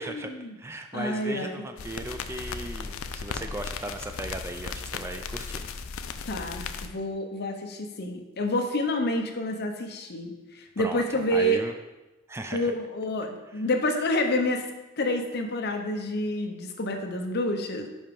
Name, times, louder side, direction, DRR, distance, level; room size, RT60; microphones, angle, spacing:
voice 1, 0.0-0.5 0.9-1.6 6.2-11.6 12.5-14.6 15.0-17.9, left 1 dB, 55° left, 5 dB, 0.8 m, -28 dB
voice 2, 0.6-5.6 10.8-11.7 12.3-12.7 13.5-13.6, right 1 dB, 10° right, 6 dB, 0.3 m, -37 dB
sound 1, 1.8-6.9, left 5 dB, 80° left, 0.5 m, -36 dB
5.2 x 4.9 x 5.3 m, 1.1 s
head